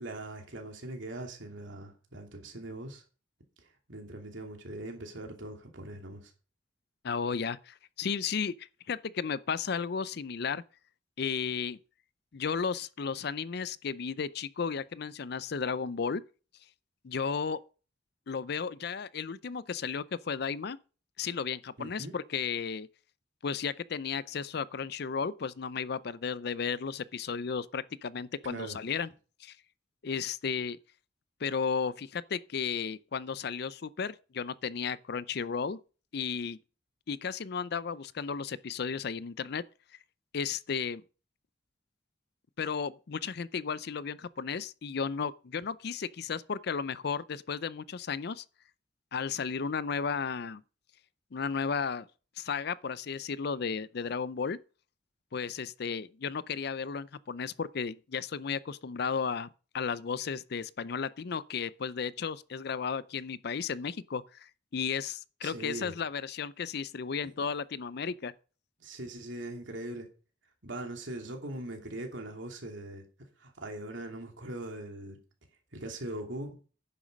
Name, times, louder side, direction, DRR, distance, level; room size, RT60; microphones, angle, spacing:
voice 1, 0.0-3.0 3.9-6.3 21.8-22.1 28.4-28.8 65.4-65.9 68.8-70.1 70.6-73.1 73.4-75.2 75.7-76.6, right 1 dB, 85° right, 2.7 m, -41 dB
voice 2, 7.0-10.6 11.2-11.8 12.3-16.2 17.0-17.6 18.3-20.8 21.2-22.9 23.4-29.1 29.4-29.6 30.0-30.8 31.4-35.8 36.1-36.6 37.1-39.6 40.3-41.0 42.6-48.4 49.1-50.6 51.3-52.1 52.4-54.6 55.3-59.5 59.7-68.3, left 6 dB, 60° left, 0.5 m, -34 dB
10.0 x 7.2 x 5.3 m
head